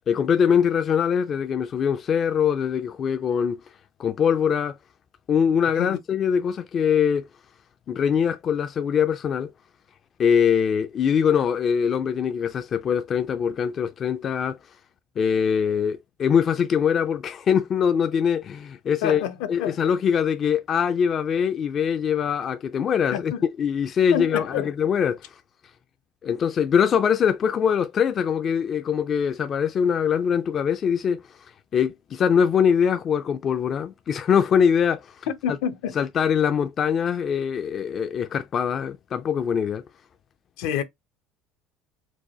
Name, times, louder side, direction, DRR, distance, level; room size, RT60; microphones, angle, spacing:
voice 1, 0.1-3.6 4.0-4.7 5.3-7.3 7.9-9.5 10.2-14.6 15.2-19.2 19.5-23.3 23.6-25.2 26.2-31.2 31.7-35.1 36.0-39.8, left 7 dB, 35° left, 0.3 m, -22 dB
voice 2, 19.0-19.8 23.1-23.4 24.1-24.7 35.3-36.0 40.6-40.8, left 9 dB, 80° left, 0.7 m, -28 dB
4.5 x 2.2 x 2.9 m
cardioid pair, 150°, 0 cm